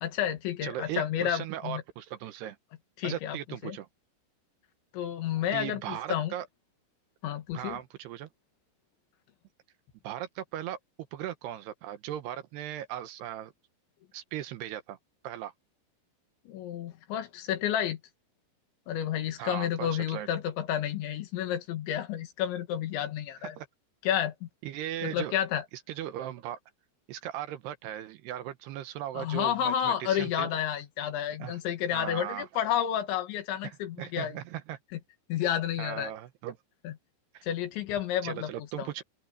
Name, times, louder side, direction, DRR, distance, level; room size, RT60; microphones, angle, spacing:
voice 1, 0.0-1.8 3.0-3.4 3.6-3.8 4.9-6.3 7.2-7.8 16.5-18.0 18.9-23.6 24.0-24.5 25.0-25.7 29.2-34.4 34.9-35.0 35.3-36.1 36.8-36.9 37.4-38.5 38.8-38.9, left 10 dB, 80° left, 4.2 m, -30 dB
voice 2, 0.6-2.6 3.0-3.9 5.5-6.5 7.5-8.3 10.0-10.8 11.1-13.5 14.1-15.0 15.2-15.5 19.4-20.3 23.4-23.7 24.6-25.4 25.9-26.6 27.1-30.5 31.4-31.6 31.9-32.5 33.6-34.8 35.8-36.6 37.3-37.4 38.2-39.0, right 12 dB, 75° right, 2.9 m, -38 dB
open air
omnidirectional pair, 5.2 m